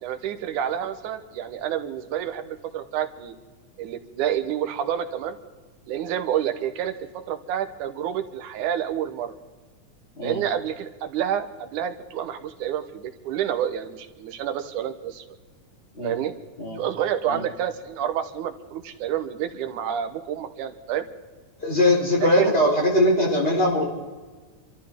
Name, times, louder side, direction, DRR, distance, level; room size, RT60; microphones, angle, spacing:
voice 1, 0.0-3.3 3.8-5.4 5.9-6.9 7.3-9.4 10.2-15.4 16.0-16.3 16.7-21.1 22.2-22.5, right 10 dB, 85° right, 8 dB, 2.5 m, -28 dB
voice 2, 21.6-23.9, left 1 dB, 20° left, -3 dB, 4.0 m, -21 dB
28.5 x 13.5 x 3.6 m, 1.4 s
omnidirectional pair, 3.4 m